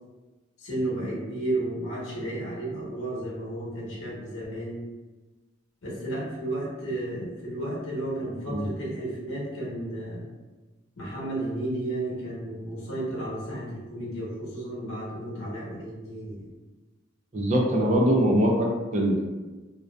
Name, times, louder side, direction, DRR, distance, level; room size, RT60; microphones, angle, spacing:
voice 1, 0.6-4.8 5.8-10.3 11.0-16.5, right 1 dB, 90° left, -5 dB, 0.9 m, -33 dB
voice 2, 17.3-18.7 18.9-19.2, equal, 35° right, -1 dB, 0.4 m, -22 dB
2.5 x 2.2 x 2.2 m, 1.2 s
head